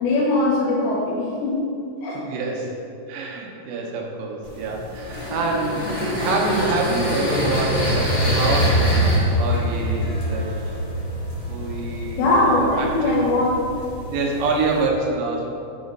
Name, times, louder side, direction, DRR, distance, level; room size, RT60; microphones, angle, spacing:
voice 1, 0.0-1.6 2.0-2.2 12.2-13.6, left 2 dB, 75° left, -6 dB, 3.0 m, -20 dB
voice 2, 2.1-2.7 3.1-10.5 11.5-12.2 12.5-13.3 14.1-15.5, right 3 dB, 75° right, -1 dB, 2.7 m, -26 dB
sound 1, 4.4-14.9, equal, 55° left, 1.5 m, -24 dB
8.0 x 4.3 x 5.2 m, 2.6 s
omnidirectional pair, 5.6 m